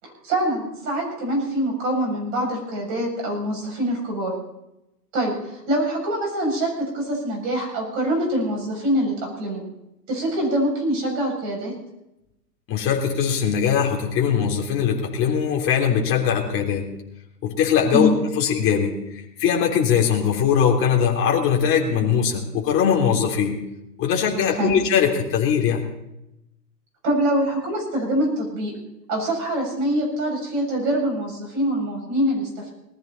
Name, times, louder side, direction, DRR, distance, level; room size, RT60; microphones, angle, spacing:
voice 1, 0.0-4.3 5.1-9.6 10.1-11.7 17.9-18.1 24.5-24.8 27.0-28.8 29.1-32.7, right 1 dB, 30° right, 0 dB, 7.9 m, -24 dB
voice 2, 12.7-16.9 17.4-23.6 24.0-25.9, left 7 dB, 25° left, 0 dB, 3.3 m, -21 dB
20.0 x 14.0 x 4.4 m, 0.87 s
hypercardioid pair, 125°, 49 cm